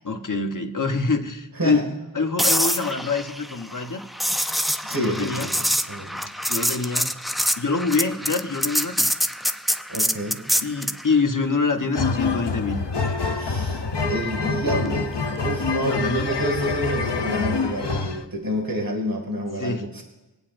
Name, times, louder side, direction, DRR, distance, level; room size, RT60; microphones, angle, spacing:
voice 1, 0.0-1.8 2.1-4.0 4.9-5.5 6.5-7.1 7.6-9.2 10.6-12.8 15.8-16.3 19.6-20.0, left 4 dB, 50° left, 5 dB, 1.1 m, -25 dB
voice 2, 1.6-1.9 4.8-6.2 9.9-10.4 13.4-15.1 15.4-20.0, equal, 55° right, 1 dB, 2.3 m, -28 dB
sound 1, 2.4-11.0 15.2-15.5, equal, ahead, 0.4 m, -25 dB
sound 2, 11.9-18.2, left 4 dB, 80° left, 0.8 m, -26 dB
22.0 x 8.8 x 2.6 m, 1.1 s
wide cardioid pair, 45°, 41 cm